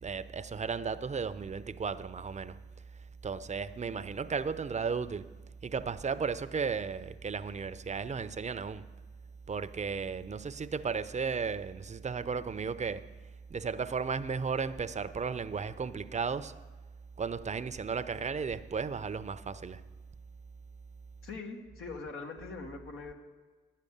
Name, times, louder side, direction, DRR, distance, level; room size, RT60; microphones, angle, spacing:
voice 1, 0.0-2.6 3.2-5.3 5.6-8.9 9.5-13.1 13.5-16.5 17.2-19.8, right 5 dB, 35° right, 0.6 m, -34 dB
voice 2, 21.2-23.1, left 4 dB, 85° left, 1.5 m, -42 dB
10.0 x 6.6 x 8.6 m
cardioid pair, 55°, 21 cm